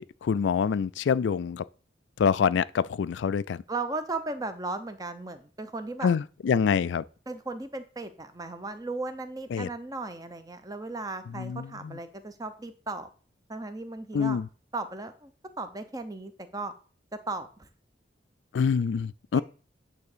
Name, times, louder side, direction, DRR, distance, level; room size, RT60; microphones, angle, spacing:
voice 1, 0.0-1.6 2.2-3.6 6.0-7.0 9.5-9.7 11.4-12.0 14.1-14.5 18.5-19.4, left 6 dB, 85° left, 0.3 m, -26 dB
voice 2, 3.7-6.1 7.3-13.1 13.5-14.4 14.7-15.3 15.6-16.7 17.1-17.7 19.3-19.4, right 3 dB, 20° right, 0.8 m, -36 dB
9.4 x 3.5 x 6.7 m
head